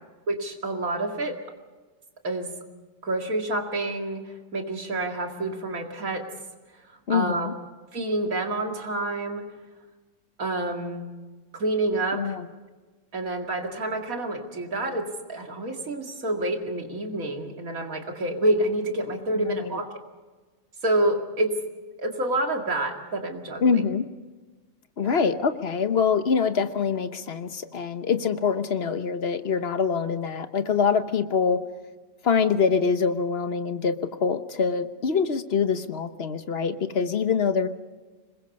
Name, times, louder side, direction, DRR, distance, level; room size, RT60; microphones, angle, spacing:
voice 1, 0.3-1.4 2.2-2.5 3.0-6.3 7.1-7.5 7.9-9.5 10.4-11.1 11.5-12.3 13.1-19.9 20.8-21.6 22.0-23.8 25.0-25.3, right 1 dB, 80° right, 3 dB, 2.7 m, -28 dB
voice 2, 7.1-7.5 12.1-12.4 19.3-19.8 23.6-24.0 25.0-31.6 32.2-37.7, left 6 dB, 50° left, 10 dB, 1.2 m, -24 dB
26.0 x 21.0 x 5.4 m, 1.3 s
omnidirectional pair, 1.5 m